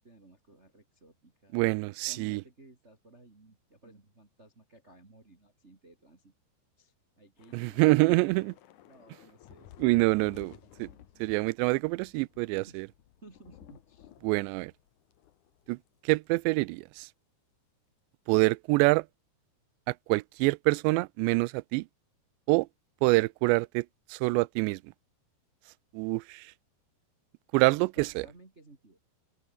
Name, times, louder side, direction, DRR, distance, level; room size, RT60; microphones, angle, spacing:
voice 1, 0.0-1.6 2.0-6.3 6.8-8.0 8.9-11.1 12.7-12.8 13.2-14.1 27.8-29.0, right 2 dB, 20° right, 2.2 m, -56 dB
voice 2, 1.5-2.4 7.5-8.5 9.8-10.5 10.8-10.9 11.2-12.9 14.2-14.7 15.7-15.8 16.0-17.1 18.3-19.1 19.9-21.9 22.5-22.7 23.0-24.8 25.9-26.5 27.5-28.3, right 24 dB, 90° right, 2.8 m, -26 dB
Thunder / Rain, 7.4-16.0 16.2-16.4 16.8-17.0, left 12 dB, 65° left, 2.1 m, -56 dB
open air
omnidirectional pair, 5.0 m